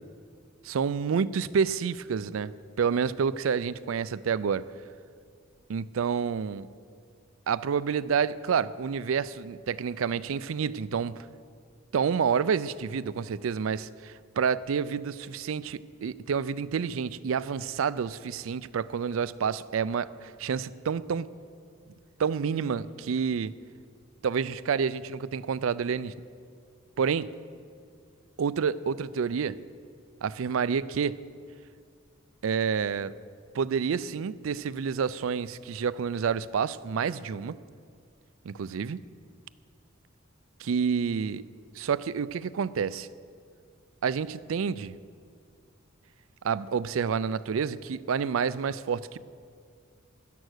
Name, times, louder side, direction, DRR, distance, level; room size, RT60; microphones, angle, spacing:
voice 1, 0.6-2.5 2.8-4.7 5.7-6.7 7.5-11.3 11.9-21.3 22.2-23.5 24.2-26.1 27.0-27.3 28.4-29.6 30.2-31.2 32.4-33.1 33.5-37.6 38.4-39.0 40.6-41.4 41.8-43.1 44.0-44.9 46.4-49.2, right 6 dB, 85° right, 17 dB, 0.4 m, -29 dB
13.0 x 10.5 x 6.4 m, 2.2 s
head